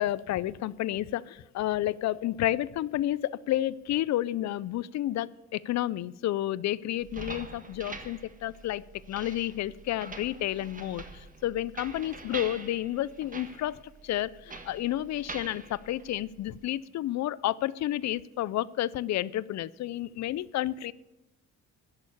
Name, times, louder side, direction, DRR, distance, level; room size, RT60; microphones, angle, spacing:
voice 1, 0.0-13.8 14.0-20.9, left 13 dB, 65° left, 20 dB, 0.5 m, -31 dB
sound 1, 7.0-16.7, right 3 dB, 25° right, 1.4 m, -45 dB
11.0 x 6.8 x 8.3 m, 0.97 s
cardioid pair, 90°, 30 cm